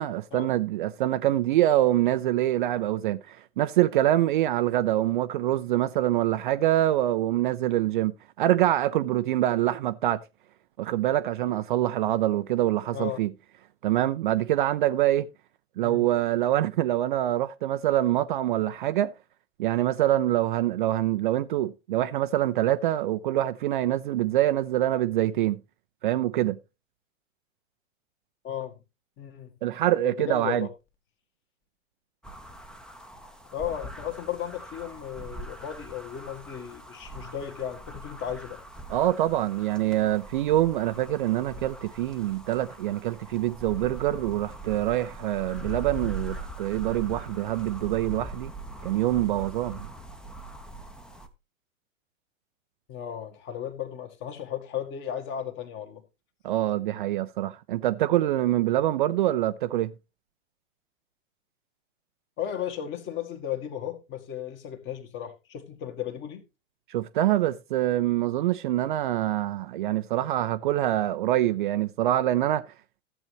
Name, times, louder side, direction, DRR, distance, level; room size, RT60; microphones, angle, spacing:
voice 1, 0.0-8.1 8.4-10.2 10.8-13.3 13.8-15.3 15.8-19.1 19.6-25.6 26.0-26.6 29.6-30.7 38.9-48.5 48.8-49.9 56.4-59.9 66.9-72.6, right 14 dB, 40° right, 0.5 m, -25 dB
voice 2, 28.4-28.8 29.2-29.5 30.0-30.7 33.5-38.6 52.9-56.0 62.4-66.4, left 10 dB, 30° left, 1.9 m, -35 dB
sound 1, 32.2-51.3, right 1 dB, ahead, 0.8 m, -41 dB
14.0 x 8.1 x 3.0 m
figure-of-eight pair, 105°, 40 cm